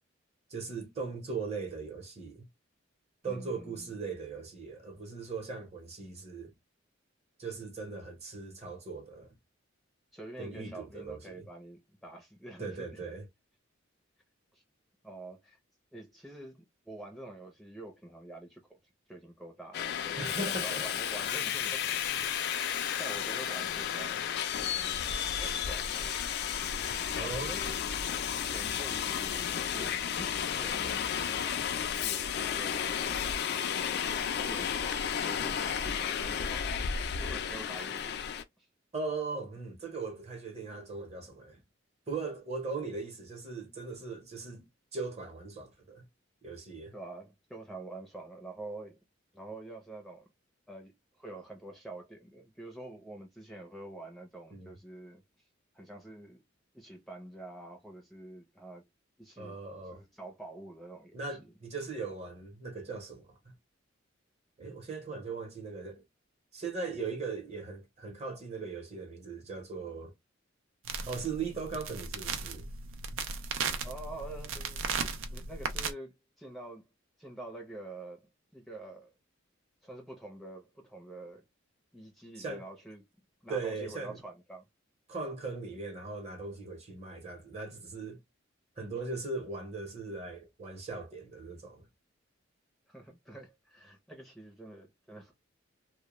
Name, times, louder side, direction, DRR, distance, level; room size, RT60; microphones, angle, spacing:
voice 1, 0.5-2.4 3.2-6.5 7.4-9.4 10.4-11.5 12.6-13.3 20.2-20.8 27.2-27.6 38.9-41.6 42.1-44.7 44.9-46.0 46.4-46.9 54.5-54.7 59.4-60.0 61.1-63.5 64.6-66.0 66.5-70.1 71.0-72.7 82.4-82.7 83.5-84.2 85.1-88.2 88.8-91.9, right 4 dB, 35° right, 0.9 m, -39 dB
voice 2, 3.2-4.0 10.1-12.9 14.5-14.6 15.0-15.6 15.9-18.8 19.1-22.3 23.0-24.3 24.6-26.1 27.1-27.8 28.4-33.3 33.8-34.0 34.3-36.7 37.2-38.2 38.6-38.7 46.9-49.0 49.3-50.3 50.7-50.9 51.2-55.2 55.7-56.4 56.7-58.8 59.2-61.5 73.8-76.8 77.2-79.1 79.8-81.4 81.9-83.0 83.4-84.6 92.9-95.3, right 2 dB, ahead, 0.6 m, -47 dB
Subway metro underground, 19.7-38.4, left 8 dB, 55° left, 0.4 m, -33 dB
sound 1, 70.8-75.9, right 5 dB, 80° right, 0.5 m, -36 dB
2.2 x 2.2 x 2.9 m
head